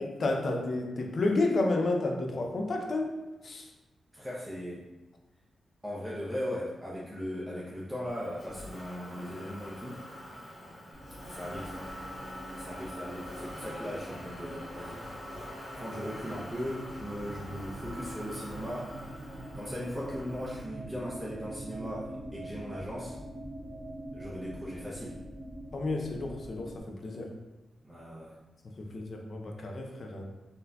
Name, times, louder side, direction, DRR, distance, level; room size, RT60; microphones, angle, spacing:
voice 1, 0.0-3.2 3.4-3.7 25.7-26.7 27.0-27.3 28.8-30.3, left 2 dB, 50° left, 1 dB, 0.4 m, -31 dB
voice 2, 4.1-4.8 5.8-10.0 11.3-11.7 12.6-15.0 15.7-18.9 19.5-23.2 24.1-25.2 27.8-28.4, equal, 10° right, -7 dB, 0.5 m, -38 dB
Motor vehicle (road), 8.1-20.6, left 1 dB, 80° left, 1.3 m, -44 dB
sound 1, 10.9-26.8, right 1 dB, 40° right, 0.8 m, -44 dB
3.8 x 2.2 x 2.2 m, 1.1 s
wide cardioid pair, 135°, 0 cm